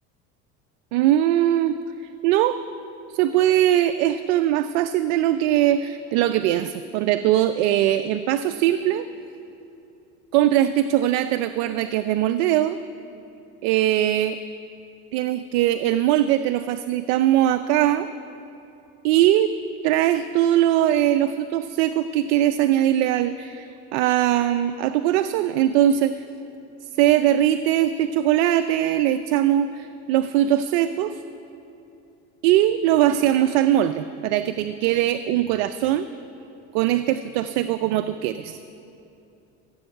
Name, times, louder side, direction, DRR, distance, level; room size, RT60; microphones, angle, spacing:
voice 1, 0.9-1.8 2.2-2.6 3.1-9.1 10.3-12.8 13.6-14.4 15.1-18.1 19.0-19.5 19.8-26.1 27.0-31.2 32.4-36.1 36.7-38.6, right 12 dB, 80° right, 11 dB, 0.5 m, -21 dB
15.5 x 7.9 x 7.7 m, 2.8 s
supercardioid pair, 105°, 31 cm